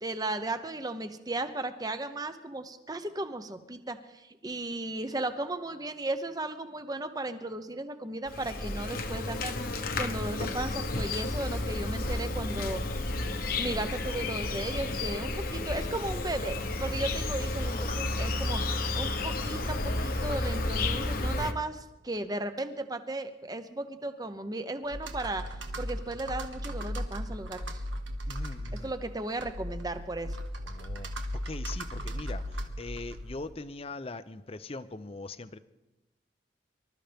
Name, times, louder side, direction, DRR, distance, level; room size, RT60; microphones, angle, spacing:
voice 1, 0.0-12.8 13.6-25.4 25.8-27.8 28.7-30.4, right 2 dB, 20° right, 9 dB, 0.8 m, -35 dB
Insect, 8.3-21.5, left 2 dB, 50° left, 1.0 m, -32 dB
Computer keyboard, 24.9-33.5, equal, 90° right, 1.5 m, -37 dB
voice 2, 28.3-28.9 30.7-35.6, left 3 dB, 30° left, 13 dB, 0.5 m, -41 dB
25.0 x 13.0 x 3.5 m, 1.0 s
head